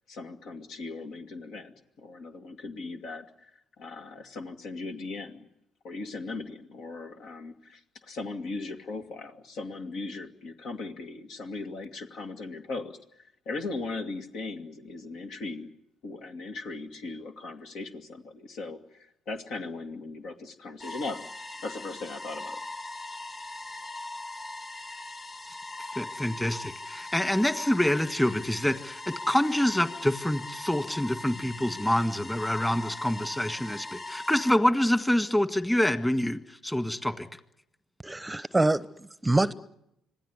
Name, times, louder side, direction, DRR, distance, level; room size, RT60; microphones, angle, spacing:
voice 1, 0.0-3.5 3.8-5.4 5.8-13.0 13.5-15.7 16.0-21.2 21.6-22.6, left 3 dB, 65° left, 2.2 m, -38 dB
sound 1, 20.8-34.5, left 2 dB, 35° left, 2.8 m, -40 dB
voice 2, 25.9-37.3, left 1 dB, 10° left, 1.8 m, -26 dB
voice 3, 38.0-39.5, right 2 dB, 15° right, 0.8 m, -25 dB
26.0 x 17.0 x 9.7 m
hypercardioid pair, 55°, 0 cm